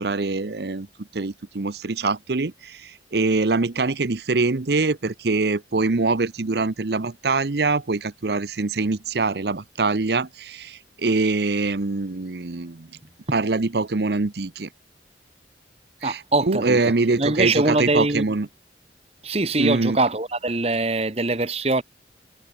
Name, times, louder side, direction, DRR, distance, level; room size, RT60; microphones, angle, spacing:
voice 1, 0.0-12.9 13.3-14.7 16.0-18.5 19.6-20.0, right 3 dB, 65° right, 0.8 m, -24 dB
voice 2, 16.0-16.8 17.2-18.2 19.2-21.8, right 2 dB, 35° right, 1.5 m, -22 dB
head